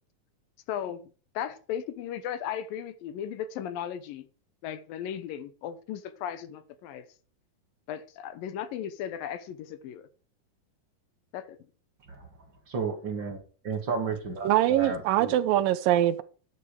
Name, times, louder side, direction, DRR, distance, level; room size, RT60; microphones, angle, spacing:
voice 1, 0.7-1.0 1.4-4.3 4.6-7.0 7.9-10.0 11.3-11.6, left 9 dB, 80° left, 2.7 m, -36 dB
voice 2, 12.7-15.3, right 5 dB, 35° right, 2.3 m, -33 dB
voice 3, 14.4-16.2, right 13 dB, 80° right, 2.4 m, -23 dB
11.0 x 9.4 x 4.9 m
omnidirectional pair, 4.1 m